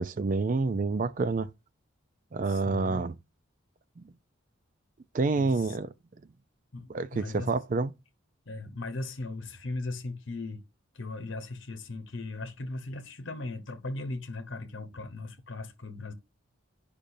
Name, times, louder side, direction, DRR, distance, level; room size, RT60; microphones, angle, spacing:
voice 1, 0.0-1.5 2.3-3.2 4.0-4.1 5.1-5.9 6.9-7.9, right 3 dB, 40° right, 0.4 m, -28 dB
voice 2, 2.5-3.0 5.4-5.8 6.7-7.5 8.5-10.6 10.9-16.1, left 2 dB, 70° left, 1.0 m, -38 dB
10.0 x 5.2 x 2.6 m
head